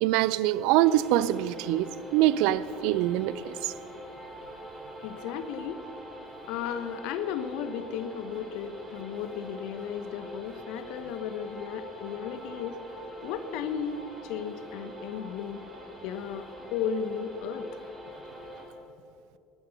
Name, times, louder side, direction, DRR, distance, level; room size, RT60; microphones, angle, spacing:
voice 1, 0.0-3.7, right 14 dB, 60° right, 0.5 m, -24 dB
sound 1, 0.8-18.7, equal, 25° right, 3.9 m, -45 dB
voice 2, 5.0-5.8 6.5-12.8 13.2-15.7 16.0-17.7, left 7 dB, 60° left, 0.8 m, -34 dB
19.5 x 9.5 x 6.8 m
figure-of-eight pair, 60°, 0 cm